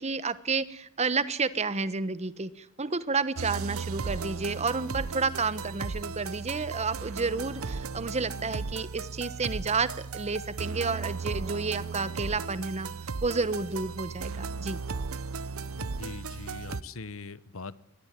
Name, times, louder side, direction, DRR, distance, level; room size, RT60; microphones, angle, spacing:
voice 1, 0.0-12.9 13.2-14.8, right 4 dB, 30° right, 15 dB, 1.1 m, -31 dB
sound 1, 3.4-16.8, right 4 dB, 80° right, 0.9 m, -36 dB
voice 2, 15.8-17.8, left 3 dB, 70° left, 16 dB, 1.1 m, -42 dB
22.5 x 18.5 x 9.3 m, 0.76 s
head